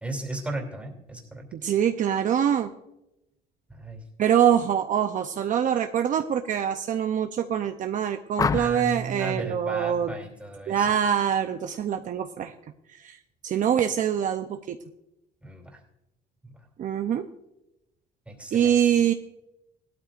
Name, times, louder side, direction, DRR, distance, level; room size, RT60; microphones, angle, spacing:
voice 1, 0.0-1.5 3.7-4.0 8.5-10.9 15.4-15.8 16.4-16.6 18.3-18.8, right 2 dB, 5° right, 2 dB, 2.9 m, -35 dB
voice 2, 1.5-2.7 4.2-10.1 10.7-12.5 13.0-13.2 13.4-14.8 16.8-17.3 18.5-19.1, right 9 dB, 50° right, 6 dB, 0.6 m, -24 dB
sound 1, 8.4-9.0 10.7-11.0 11.4-11.8, left 6 dB, 20° left, 0.3 m, -29 dB
17.5 x 12.5 x 2.5 m, 0.89 s
cardioid pair, 110°, 17 cm